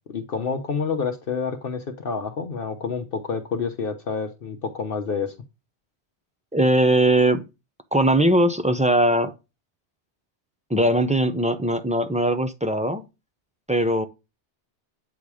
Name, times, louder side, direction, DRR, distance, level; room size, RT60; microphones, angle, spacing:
voice 1, 0.1-5.3, left 5 dB, 55° left, 1.0 m, -28 dB
voice 2, 6.5-7.4 7.9-9.3 10.7-13.0 13.7-14.0, right 1 dB, 10° right, 0.4 m, -20 dB
8.6 x 4.0 x 4.8 m
omnidirectional pair, 1.1 m